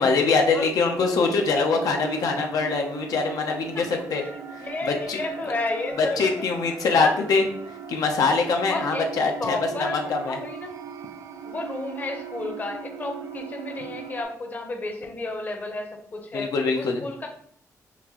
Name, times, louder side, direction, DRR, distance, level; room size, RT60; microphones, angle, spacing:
voice 1, 0.0-4.2 4.8-5.2 6.0-7.4 7.9-10.4 16.3-17.0, left 4 dB, 75° left, 3 dB, 0.6 m, -23 dB
voice 2, 0.5-1.3 3.7-3.8 4.2-6.3 6.9-7.1 8.7-9.0 9.4-10.7 11.4-16.5 16.7-17.3, left 2 dB, 30° left, 3 dB, 0.7 m, -32 dB
sound 1, 1.0-14.2, right 6 dB, 55° right, 0.4 m, -39 dB
5.6 x 2.5 x 2.9 m, 0.63 s
wide cardioid pair, 150°, 6 cm